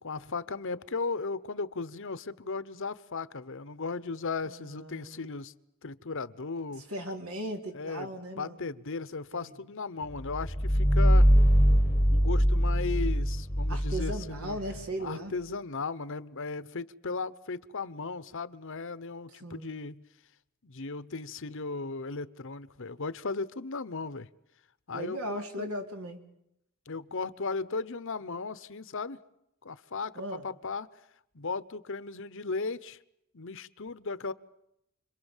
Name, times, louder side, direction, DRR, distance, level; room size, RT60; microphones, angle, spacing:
voice 1, 0.0-5.5 5.8-6.9 7.7-8.1 8.4-11.3 12.1-14.6 15.0-20.0 20.6-24.3 24.9-25.7 26.9-29.2 29.6-30.9 31.3-33.0 33.3-34.3, left 4 dB, 65° left, 1.0 m, -36 dB
voice 2, 4.5-5.3 6.9-8.7 9.3-9.5 13.7-15.4 19.4-19.7 24.9-26.2 30.2-30.4, right 1 dB, 75° right, 3.9 m, -37 dB
sound 1, 10.1-14.8, equal, 10° left, 1.2 m, -23 dB
30.0 x 23.0 x 7.4 m
head